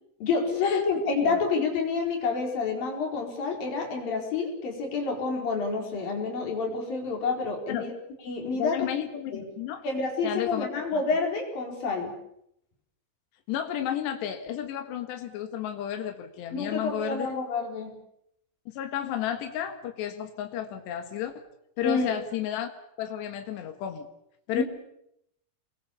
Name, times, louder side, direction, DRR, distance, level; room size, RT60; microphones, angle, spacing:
voice 1, 0.2-7.9 8.3-8.8 9.3-9.4 9.8-12.1 16.5-17.9 21.8-22.2 24.5-24.6, left 4 dB, 55° left, 2 dB, 6.2 m, -28 dB
voice 2, 8.5-9.8 10.2-11.0 13.5-17.4 18.7-21.3 21.8-22.7 23.0-24.1 24.5-24.6, left 10 dB, 85° left, 6 dB, 3.9 m, -32 dB
28.5 x 21.5 x 7.1 m, 0.77 s
omnidirectional pair, 4.8 m